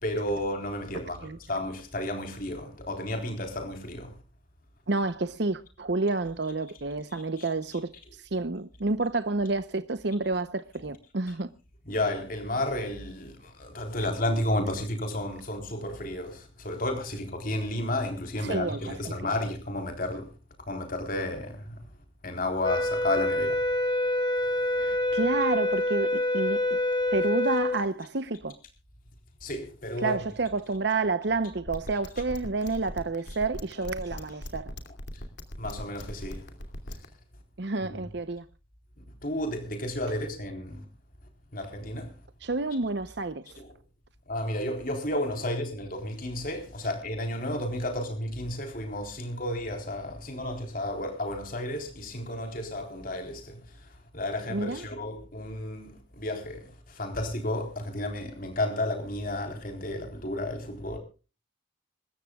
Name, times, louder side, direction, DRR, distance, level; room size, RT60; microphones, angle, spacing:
voice 1, 0.0-4.1 7.1-7.4 11.9-20.3 20.7-21.7 22.2-23.6 29.4-30.2 35.6-36.4 39.2-40.8 41.5-42.1 43.6-43.7 44.3-53.6 54.1-56.7 57.0-61.0, left 1 dB, 45° left, 3.9 m, -32 dB
voice 2, 4.9-11.5 18.4-19.1 24.8-26.8 27.1-28.6 30.0-34.7 37.6-38.4 42.4-43.5 54.5-54.8, right 3 dB, 60° right, 0.8 m, -29 dB
sound 1, 22.6-27.8, left 1 dB, 25° left, 3.4 m, -26 dB
sound 2, 31.7-37.1, left 1 dB, 60° left, 2.6 m, -38 dB
26.0 x 14.0 x 2.3 m
head